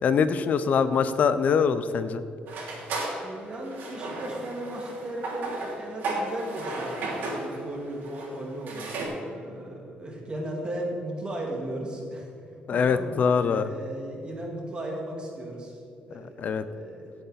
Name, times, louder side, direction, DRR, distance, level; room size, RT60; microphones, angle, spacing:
voice 1, 0.0-2.2 12.7-13.7 16.4-16.6, left 6 dB, 50° left, 12 dB, 0.7 m, -23 dB
sound 1, 2.5-9.1, right 2 dB, 70° right, 3.1 m, -34 dB
voice 2, 3.0-12.3 12.7-15.8 16.1-17.1, right 1 dB, 30° right, -1 dB, 2.1 m, -36 dB
17.0 x 8.0 x 4.1 m, 2.5 s
cardioid pair, 135°, 3 cm